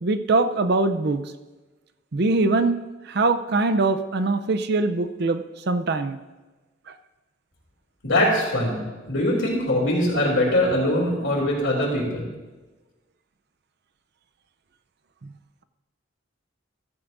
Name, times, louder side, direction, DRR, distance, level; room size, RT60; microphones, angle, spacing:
voice 1, 0.0-1.3 2.1-6.2 6.9-7.0 15.2-15.3, right 3 dB, 55° right, 9 dB, 0.6 m, -23 dB
voice 2, 8.0-12.3, left 1 dB, 70° left, -8 dB, 2.9 m, -22 dB
15.0 x 13.5 x 2.6 m, 1.2 s
head